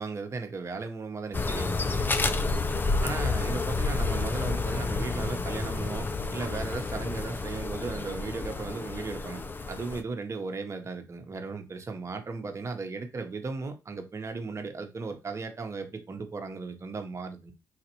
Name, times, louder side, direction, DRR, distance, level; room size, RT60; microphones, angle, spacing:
voice 1, 0.0-2.1 3.0-9.4 9.7-17.5, right 4 dB, 35° right, 0.9 m, -36 dB
sound 1, 1.3-10.0, left 3 dB, 25° left, 0.4 m, -30 dB
4.1 x 2.5 x 2.9 m
supercardioid pair, 65°, 8 cm